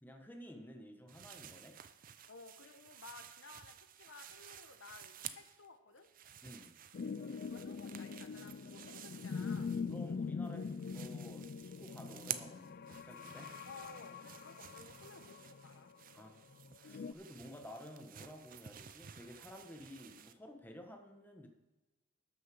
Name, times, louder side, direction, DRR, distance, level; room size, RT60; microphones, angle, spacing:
voice 1, 0.0-1.8 6.4-6.8 9.9-13.5 16.1-21.5, equal, 10° left, 3 dB, 1.2 m, -53 dB
sound 1, 1.1-5.7 6.0-10.2 10.4-20.3, right 10 dB, 45° right, 0.5 m, -52 dB
voice 2, 2.3-6.1 7.2-9.7 13.7-15.9, left 4 dB, 80° left, 8 dB, 1.0 m, -56 dB
sound 2, 6.9-17.1, left 5 dB, 50° left, 0.4 m, -43 dB
13.0 x 6.6 x 6.1 m, 1.1 s
head